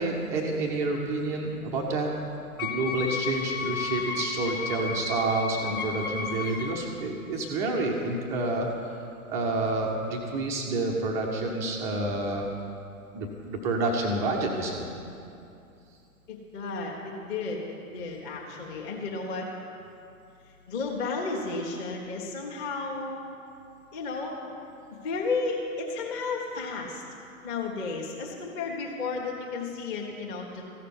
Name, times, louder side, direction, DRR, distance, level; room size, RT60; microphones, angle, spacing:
voice 1, 0.0-2.1 2.6-8.7 9.3-12.4 13.1-14.8, right 2 dB, 5° right, 0 dB, 0.5 m, -29 dB
Wind instrument woodwind instrument, 2.6-6.9, left 6 dB, 80° left, 1.3 m, -33 dB
voice 2, 16.3-19.5 20.7-23.2 23.9-24.3 25.0-27.0 27.4-30.6, left 4 dB, 25° left, -1 dB, 1.3 m, -33 dB
15.0 x 6.6 x 9.6 m, 2.6 s
figure-of-eight pair, 120°, 43 cm